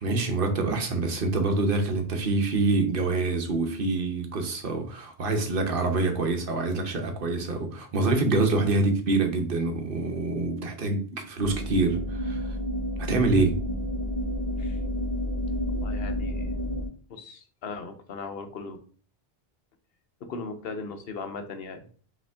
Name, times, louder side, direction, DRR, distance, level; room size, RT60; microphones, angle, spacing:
voice 1, 0.0-12.6 13.0-13.6, right 3 dB, 60° right, 5 dB, 1.0 m, -26 dB
sound 1, 11.4-16.9, equal, 20° left, 1.0 m, -30 dB
voice 2, 15.7-16.5 17.1-18.8 20.2-21.9, left 4 dB, 70° left, 7 dB, 0.9 m, -38 dB
5.1 x 2.8 x 3.4 m, 0.43 s
omnidirectional pair, 1.1 m